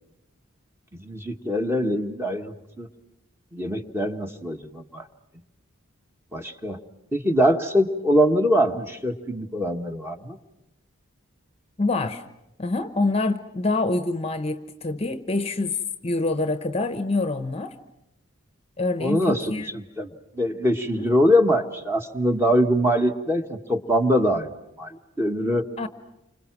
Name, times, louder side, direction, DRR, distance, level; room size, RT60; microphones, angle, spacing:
voice 1, 0.9-2.9 3.5-5.0 6.3-6.8 7.1-10.4 19.0-20.1 20.3-24.5 24.8-25.7, equal, 10° right, 5 dB, 1.6 m, -23 dB
voice 2, 11.8-12.2 12.6-17.7 18.8-19.7 20.9-21.1 25.8-25.9, left 2 dB, 30° left, 10 dB, 1.0 m, -26 dB
29.5 x 26.5 x 6.1 m, 0.91 s
head